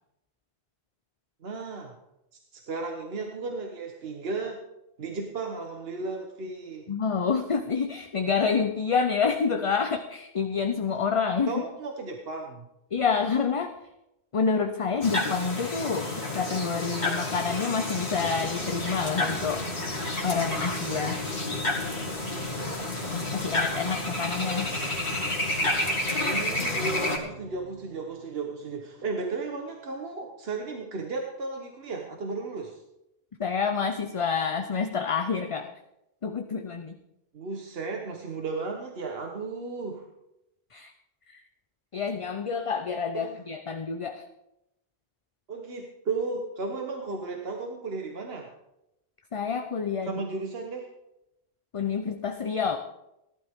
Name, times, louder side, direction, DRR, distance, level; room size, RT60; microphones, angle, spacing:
voice 1, 1.4-1.9 2.5-4.6 5.0-6.9 10.9-11.0 11.5-12.7 26.2-32.8 37.3-40.1 43.1-43.4 45.5-48.5 50.0-50.9, right 3 dB, 75° right, 2 dB, 1.4 m, -34 dB
voice 2, 6.9-11.6 12.9-13.7 14.3-19.7 20.2-21.2 23.3-24.7 33.4-35.7 36.2-37.0 40.7-40.9 41.3-41.4 41.9-44.2 49.3-50.2 51.7-52.8, left 5 dB, 35° left, 6 dB, 0.6 m, -28 dB
sound 1, 15.0-27.2, left 2 dB, 65° left, 2.5 m, -30 dB
sound 2, 17.6-29.2, right 6 dB, 20° right, 2.0 m, -48 dB
18.0 x 11.5 x 3.6 m, 0.88 s
omnidirectional pair, 1.0 m